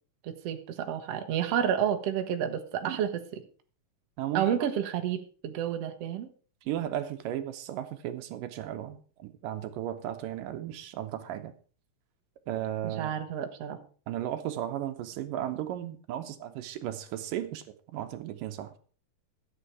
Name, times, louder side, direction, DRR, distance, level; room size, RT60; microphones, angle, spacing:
voice 1, 0.2-3.2 4.3-6.3 12.8-13.8, right 9 dB, 55° right, 5 dB, 2.0 m, -30 dB
voice 2, 4.2-4.7 6.7-11.5 12.5-13.2 14.1-18.8, right 11 dB, 80° right, 8 dB, 2.5 m, -35 dB
13.0 x 8.7 x 4.8 m, 0.40 s
omnidirectional pair, 3.8 m